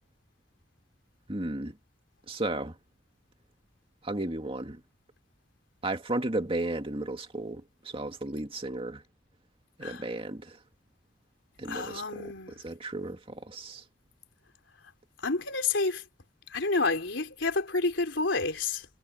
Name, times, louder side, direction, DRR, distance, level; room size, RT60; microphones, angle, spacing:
voice 1, 1.3-1.7 2.3-2.7 4.0-4.8 5.8-9.0 9.8-10.6 11.6-13.8, right 2 dB, 30° right, 2.3 m, -34 dB
voice 2, 11.7-12.6 15.2-16.0 16.5-18.9, left 3 dB, 70° left, 3.8 m, -29 dB
head